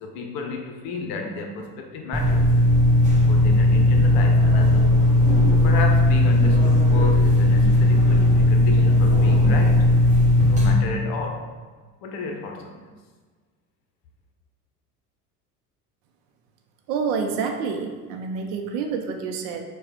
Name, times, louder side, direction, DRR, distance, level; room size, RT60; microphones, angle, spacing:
voice 1, 0.0-2.5 3.1-5.0 5.5-9.9 10.5-11.6 12.0-12.8, left 3 dB, 50° left, 3 dB, 0.8 m, -32 dB
sound 1, 2.1-10.7, left 1 dB, 15° right, 1.4 m, -17 dB
voice 2, 16.9-19.6, right 5 dB, 55° right, 4 dB, 0.7 m, -28 dB
4.7 x 2.4 x 4.3 m, 1.4 s
figure-of-eight pair, 65°, 47 cm